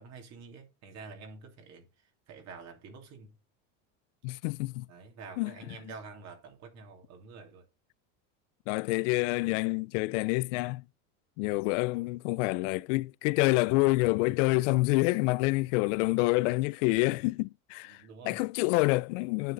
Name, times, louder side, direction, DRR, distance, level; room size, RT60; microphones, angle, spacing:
voice 1, 0.0-1.8 2.3-3.3 4.9-7.6 17.9-18.4, right 4 dB, 45° right, 2.8 m, -48 dB
voice 2, 4.2-4.9 5.4-5.5 8.7-10.8 11.4-19.5, left 22 dB, 75° left, 0.5 m, -27 dB
9.3 x 6.7 x 3.9 m
supercardioid pair, 145°, 38 cm